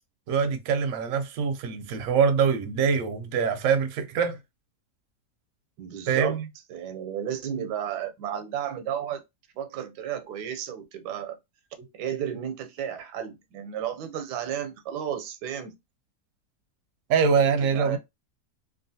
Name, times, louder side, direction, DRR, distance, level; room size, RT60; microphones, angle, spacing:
voice 1, 0.3-4.4 6.1-6.5 17.1-18.0, right 6 dB, 70° right, 0.9 m, -24 dB
voice 2, 5.8-6.4 6.7-9.2 9.6-11.4 11.9-15.7 17.4-18.0, right 9 dB, 85° right, 1.2 m, -33 dB
3.0 x 2.4 x 2.6 m
omnidirectional pair, 1.7 m